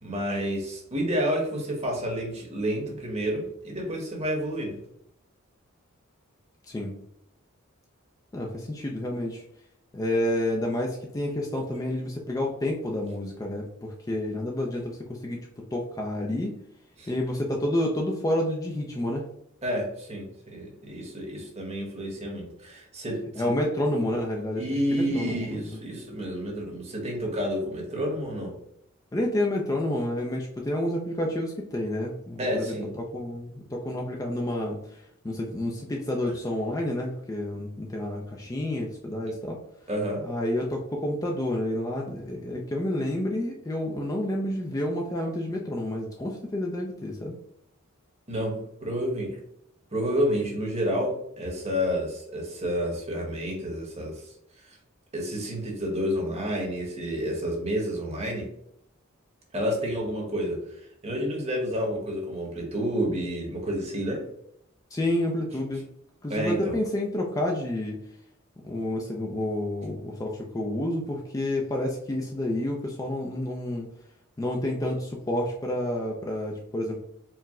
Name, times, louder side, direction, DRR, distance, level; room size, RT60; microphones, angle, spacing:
voice 1, 0.0-4.8 17.0-17.1 19.6-23.5 24.6-28.5 32.4-32.9 39.9-40.3 48.3-49.4 49.9-54.3 54.6-54.8 55.1-58.5 59.5-60.7 61.0-64.2 66.3-66.8, equal, 30° right, -1 dB, 1.1 m, -29 dB
voice 2, 8.3-9.4 9.9-16.5 17.1-19.3 23.3-25.8 29.1-39.6 40.2-47.4 64.9-65.8 66.2-68.0 68.6-73.9 74.4-77.0, left 1 dB, 15° left, -1 dB, 0.4 m, -29 dB
4.6 x 2.1 x 3.6 m, 0.76 s
head